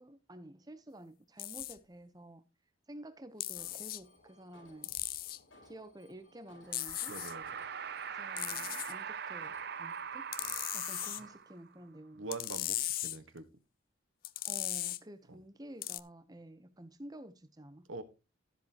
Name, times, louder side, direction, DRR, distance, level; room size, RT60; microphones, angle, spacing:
voice 1, 0.0-2.4 2.9-4.9 5.6-7.2 8.2-10.3 10.7-12.3 14.4-17.9, right 1 dB, 20° right, 0.8 m, -51 dB
sound 1, 1.4-1.8 3.4-4.0 4.8-5.4 6.7-7.3 8.4-8.9 10.3-11.2 12.3-13.2 14.2-15.0 15.8-16.0, left 16 dB, 45° left, 0.4 m, -37 dB
Alarm, 3.6-11.4, left 2 dB, 70° left, 3.2 m, -62 dB
sound 2, 6.6-11.7, right 7 dB, 50° right, 0.5 m, -42 dB
voice 2, 7.1-7.4 12.1-13.4 15.3-15.4 17.9-18.0, right 3 dB, 80° right, 1.4 m, -43 dB
13.0 x 7.8 x 2.9 m
head